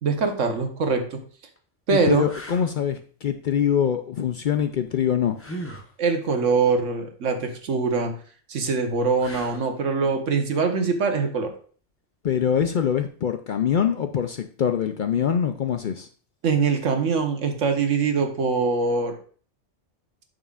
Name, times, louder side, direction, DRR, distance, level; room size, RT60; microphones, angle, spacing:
voice 1, 0.0-1.2 1.9-2.3 6.0-8.1 8.5-11.5 16.4-19.2, right 4 dB, 85° right, 5 dB, 1.5 m, -23 dB
sound 1, 0.7-0.9 1.6-1.7 2.3-2.7 5.4-5.9 9.2-9.8 12.7-12.9, right 1 dB, 15° left, 0.8 m, -38 dB
voice 2, 1.9-5.4 12.2-16.1, left 8 dB, 60° left, 7 dB, 0.5 m, -24 dB
9.1 x 6.5 x 2.4 m, 0.44 s
omnidirectional pair, 1.2 m